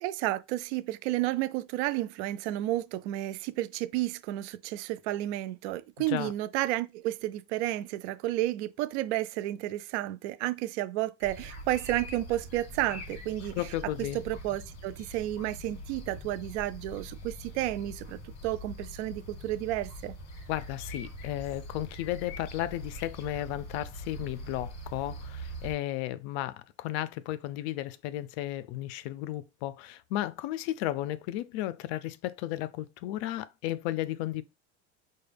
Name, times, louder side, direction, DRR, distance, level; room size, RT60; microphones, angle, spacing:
voice 1, 0.0-13.7 14.1-20.1, right 15 dB, 85° right, 0.5 m, -32 dB
sound 1, 11.2-25.7, equal, 50° left, 1.6 m, -43 dB
voice 2, 13.5-14.2 20.5-34.4, left 14 dB, 70° left, 0.5 m, -34 dB
5.2 x 2.3 x 3.3 m
supercardioid pair, 115°, 33 cm